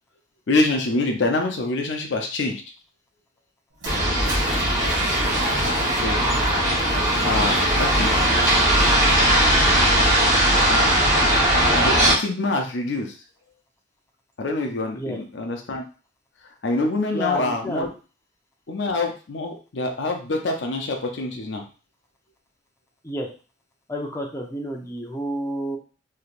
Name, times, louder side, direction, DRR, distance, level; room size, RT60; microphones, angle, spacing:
voice 1, 0.5-2.6 6.0-6.2 7.2-8.2 10.7-10.9 11.2-11.3 11.7-13.1 14.4-15.8 16.6-17.9 18.7-21.6, left 2 dB, 80° left, 3 dB, 0.6 m, -25 dB
Toilet flush, 3.7-11.0, right 1 dB, 85° right, 1.2 m, -37 dB
sound 1, 3.9-12.1, right 1 dB, 20° right, 1.0 m, -19 dB
voice 2, 17.1-17.9 23.0-23.3 23.9-25.8, right 1 dB, 15° left, 1 dB, 0.6 m, -30 dB
3.3 x 2.8 x 2.5 m, 0.35 s
head